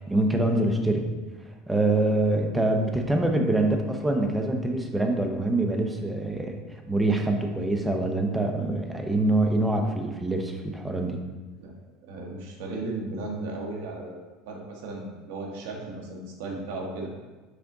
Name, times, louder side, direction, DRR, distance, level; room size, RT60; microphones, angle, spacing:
voice 1, 0.1-1.1 1.7-6.6 6.9-11.2, right 2 dB, 10° right, 3 dB, 0.7 m, -25 dB
voice 2, 12.0-17.1, right 2 dB, 85° right, 0 dB, 1.5 m, -35 dB
6.0 x 5.0 x 3.9 m, 1.3 s
cardioid pair, 145°, 0 cm